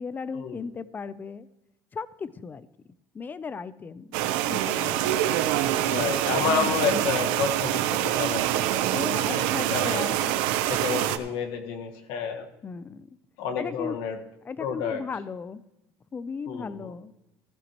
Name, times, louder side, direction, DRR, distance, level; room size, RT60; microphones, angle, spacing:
voice 1, 0.0-1.5 1.9-2.7 3.1-5.1 5.8-6.0 6.3-7.1 8.9-10.4 12.6-13.1 13.6-14.0 14.4-15.6 16.1-17.1, left 5 dB, 20° left, 16 dB, 0.5 m, -36 dB
sound 1, 4.1-11.2, right 12 dB, 80° right, 0.8 m, -25 dB
voice 2, 5.9-8.7 9.3-10.1 10.6-12.5 13.4-14.2 14.6-15.0 16.5-16.9, left 6 dB, 75° left, 4 dB, 1.6 m, -30 dB
15.5 x 12.5 x 3.1 m, 0.92 s
cardioid pair, 135°, 9 cm